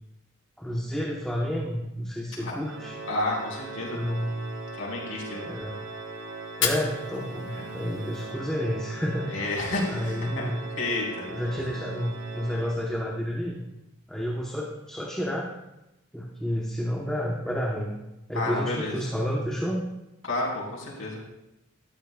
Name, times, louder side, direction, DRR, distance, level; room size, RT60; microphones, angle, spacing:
voice 1, 0.6-2.9 3.9-4.4 5.5-5.8 6.6-9.3 9.9-10.6 11.3-13.6 14.1-15.5 16.1-17.9 18.3-19.8, equal, 5° left, -3 dB, 1.0 m, -30 dB
Organ, 2.6-13.3, right 3 dB, 65° right, 1.1 m, -40 dB
voice 2, 3.1-4.1 4.8-5.5 7.5-7.6 9.3-10.5 10.8-11.3 18.3-19.0 20.2-21.2, left 2 dB, 75° left, -5 dB, 4.4 m, -30 dB
Fire, 6.4-8.5, left 6 dB, 55° left, 1.3 m, -33 dB
13.5 x 12.0 x 2.3 m, 0.93 s
head